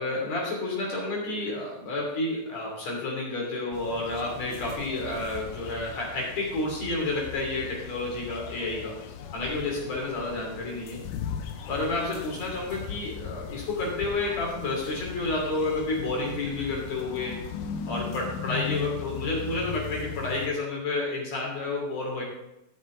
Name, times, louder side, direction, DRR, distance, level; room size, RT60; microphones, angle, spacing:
voice 1, 0.0-9.0 9.3-11.0 11.7-17.4 17.9-22.2, left 2 dB, 45° left, -2 dB, 3.8 m, -30 dB
sound 1, 3.7-20.5, left 8 dB, 75° left, 1.9 m, -38 dB
15.0 x 6.5 x 3.8 m, 0.89 s
omnidirectional pair, 4.3 m